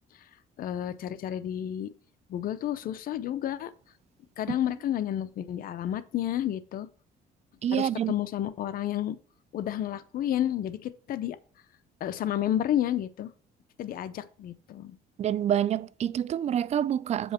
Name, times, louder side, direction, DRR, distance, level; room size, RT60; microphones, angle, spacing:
voice 1, 0.6-1.9 2.3-3.7 4.4-6.9 7.7-9.2 9.5-11.4 12.0-13.3 13.8-15.0, left 11 dB, 60° left, 0.7 m, -31 dB
voice 2, 7.6-8.1 15.2-17.3, right 10 dB, 40° right, 0.4 m, -27 dB
7.4 x 5.5 x 4.3 m
cardioid pair, 110°, 17 cm